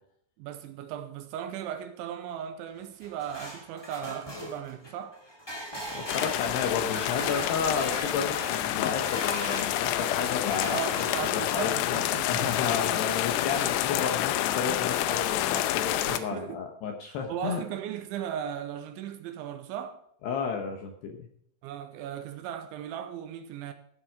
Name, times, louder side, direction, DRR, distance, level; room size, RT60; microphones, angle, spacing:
voice 1, 0.4-5.2 10.7-12.5 16.0-16.6 17.0-20.0 21.6-23.7, right 9 dB, 80° right, 3.1 m, -37 dB
sound 1, 2.8-9.8 10.2-11.6, equal, 15° left, 0.9 m, -40 dB
voice 2, 5.9-10.8 11.3-17.6 20.2-21.2, left 5 dB, 70° left, 2.8 m, -32 dB
sound 2, 6.1-16.2, left 13 dB, 85° left, 3.3 m, -28 dB
15.0 x 7.6 x 4.9 m
omnidirectional pair, 5.7 m